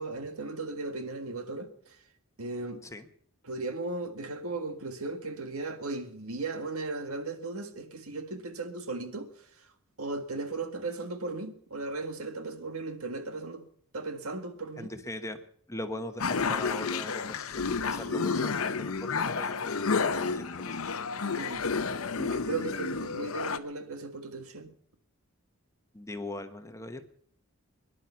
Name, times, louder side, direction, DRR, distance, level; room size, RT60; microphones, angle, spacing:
voice 1, 0.0-1.7 2.4-2.8 3.4-9.3 10.0-13.6 13.9-14.9 18.1-18.4 21.3-21.7 22.2-24.7, right 3 dB, 80° right, 1.8 m, -36 dB
voice 2, 14.8-15.4 15.7-20.8 25.9-27.0, left 1 dB, 15° left, 1.1 m, -40 dB
sound 1, 16.2-23.6, left 5 dB, 70° left, 0.8 m, -31 dB
22.5 x 11.0 x 5.7 m
head